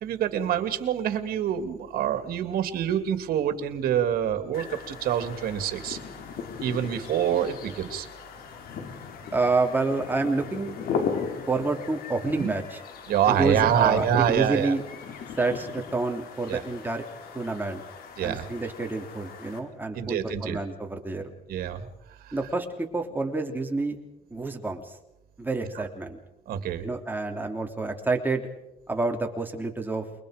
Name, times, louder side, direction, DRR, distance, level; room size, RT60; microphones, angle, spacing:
voice 1, 0.0-6.0 6.6-8.1 12.3-12.5 13.1-14.7 16.5-16.6 18.2-18.5 19.9-20.6 21.5-21.9 22.2-22.3 26.5-26.9, right 9 dB, 80° right, 9 dB, 2.5 m, -26 dB
sound 1, 4.5-19.6, left 6 dB, 80° left, 4.0 m, -38 dB
voice 2, 9.3-10.8 11.5-12.8 13.3-14.8 15.4-17.0 17.3-17.8 18.2-21.3 22.3-24.0 24.3-24.9 25.4-26.2 26.8-28.5 28.9-30.1, right 3 dB, 10° right, 3 dB, 3.2 m, -28 dB
28.5 x 23.0 x 5.1 m, 0.93 s
cardioid pair, 105°, 15 cm